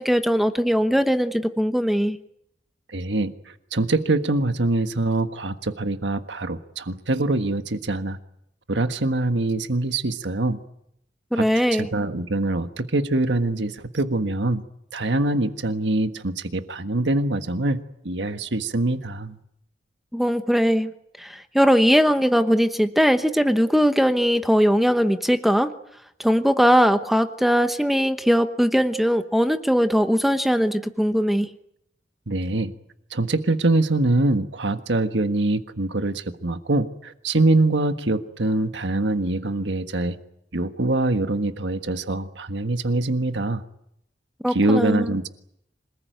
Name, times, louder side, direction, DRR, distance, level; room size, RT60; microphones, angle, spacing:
voice 1, 0.0-2.2 11.3-11.9 20.1-20.9 21.2-25.7 26.2-31.5 44.4-45.1, equal, ahead, 8 dB, 1.0 m, -20 dB
voice 2, 2.9-8.2 8.7-10.6 11.4-11.5 11.7-14.6 14.9-17.8 18.0-19.4 32.3-32.7 33.1-40.2 40.5-43.6 44.5-45.3, right 2 dB, 90° right, 8 dB, 1.5 m, -24 dB
26.5 x 19.5 x 9.3 m, 0.76 s
head